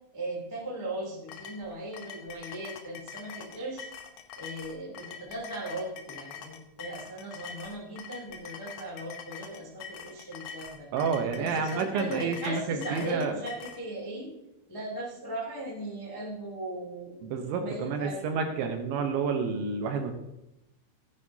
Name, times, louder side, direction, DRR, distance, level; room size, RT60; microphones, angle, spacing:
voice 1, 0.1-3.9 4.3-10.9 11.3-14.3 14.7-17.3 17.6-18.3, right 1 dB, 20° left, -4 dB, 0.5 m, -38 dB
sound 1, 1.3-13.8, left 7 dB, 90° left, 2.3 m, -44 dB
voice 2, 10.9-13.3 17.2-20.1, right 5 dB, 75° right, 5 dB, 3.0 m, -29 dB
15.0 x 9.6 x 2.8 m, 0.91 s
omnidirectional pair, 5.9 m